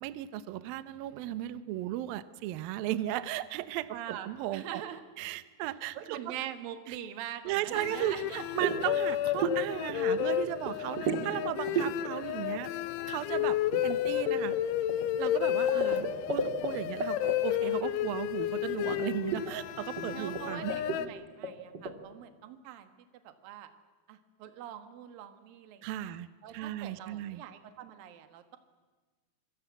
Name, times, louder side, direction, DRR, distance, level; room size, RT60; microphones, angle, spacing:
voice 1, 0.0-4.8 5.2-6.4 6.9-7.0 7.5-8.2 8.5-12.7 13.1-13.6 13.8-14.6 15.2-20.8 25.8-26.3 26.5-27.4, right 14 dB, 75° right, 13 dB, 2.1 m, -36 dB
voice 2, 3.9-5.0 6.0-8.4 15.7-16.0 20.1-22.9 23.2-23.7 24.1-26.1 26.4-28.6, right 11 dB, 60° right, 8 dB, 2.9 m, -43 dB
sound 1, 7.7-21.1, left 12 dB, 85° left, 3.4 m, -32 dB
sound 2, 8.4-8.8 9.1-9.6 9.9-10.3 10.6-11.3 11.7-11.9 13.4-16.7 17.0-17.3 18.9-19.0 19.3-19.5 20.0-20.1 20.3-20.4 20.7-21.0 21.4-21.9, right 4 dB, 40° right, 1.5 m, -32 dB
26.0 x 22.5 x 8.3 m, 1.3 s
omnidirectional pair, 5.4 m